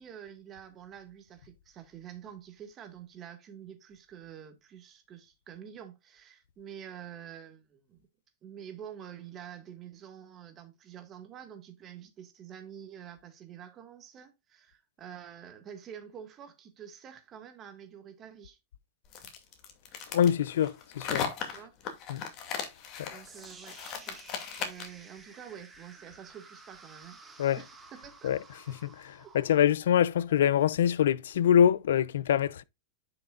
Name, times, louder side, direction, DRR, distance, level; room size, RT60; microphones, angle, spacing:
voice 1, 0.0-8.0 8.4-18.6 21.5-21.7 23.1-24.2 24.5-27.2 27.6-28.3 29.2-29.3, right 9 dB, 25° right, 1.9 m, -47 dB
sound 1, 19.1-25.0, left 7 dB, 35° left, 2.4 m, -37 dB
voice 2, 20.1-21.2 22.1-22.2 23.0-23.1 27.4-27.6 28.2-28.4 28.8-32.6, left 9 dB, 90° left, 0.5 m, -25 dB
sound 2, 23.2-31.3, right 3 dB, 10° right, 1.7 m, -54 dB
10.5 x 6.0 x 2.4 m
supercardioid pair, 150°, 0 cm